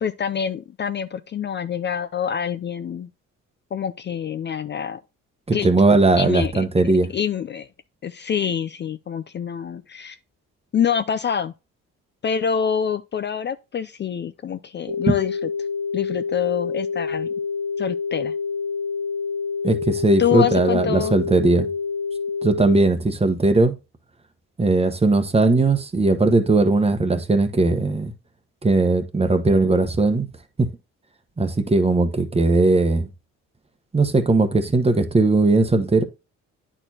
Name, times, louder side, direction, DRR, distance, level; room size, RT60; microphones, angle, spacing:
voice 1, 0.0-3.1 3.7-5.0 5.5-5.7 6.2-6.6 7.1-7.7 8.0-10.2 10.7-11.5 12.2-15.4 15.9-17.3 17.8-18.3 20.2-21.2, left 8 dB, 35° left, 0.4 m, -26 dB
voice 2, 5.5-7.1 15.1-15.2 19.6-21.7 22.4-23.7 24.6-28.1 28.6-30.3 30.6-30.7 31.4-33.1 33.9-36.0, right 3 dB, 20° right, 1.0 m, -18 dB
sound 1, 14.9-22.8, left 5 dB, 60° right, 0.9 m, -27 dB
9.8 x 4.4 x 2.8 m
cardioid pair, 90°, 30 cm